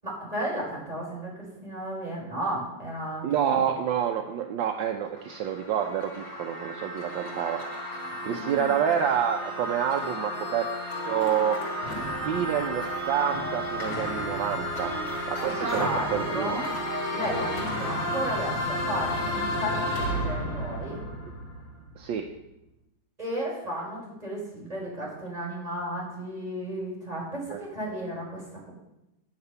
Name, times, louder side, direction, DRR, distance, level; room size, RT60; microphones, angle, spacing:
voice 1, 0.0-3.6 8.2-8.8 15.4-16.7 17.1-21.0 23.2-28.7, right 1 dB, 20° right, -5 dB, 4.8 m, -34 dB
voice 2, 3.2-7.6 8.2-10.7 11.1-11.6 12.2-14.9 15.3-16.6 22.0-22.2, right 9 dB, 75° right, 4 dB, 1.4 m, -28 dB
sound 1, 4.9-21.9, equal, 45° left, 2.6 m, -32 dB
9.7 x 6.8 x 6.9 m, 0.91 s
omnidirectional pair, 2.1 m